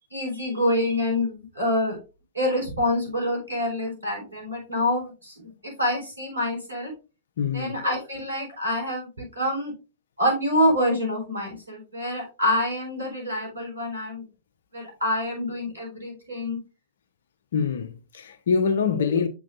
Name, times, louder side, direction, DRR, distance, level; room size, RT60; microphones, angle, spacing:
voice 1, 0.1-2.0 2.3-6.9 7.5-9.7 10.2-14.2 14.7-16.6 19.0-19.2, left 1 dB, 85° right, 3.5 m, -26 dB
voice 2, 7.4-7.8 17.5-19.3, left 6 dB, 60° left, 0.8 m, -24 dB
7.5 x 6.1 x 2.4 m
figure-of-eight pair, 105°, 0 cm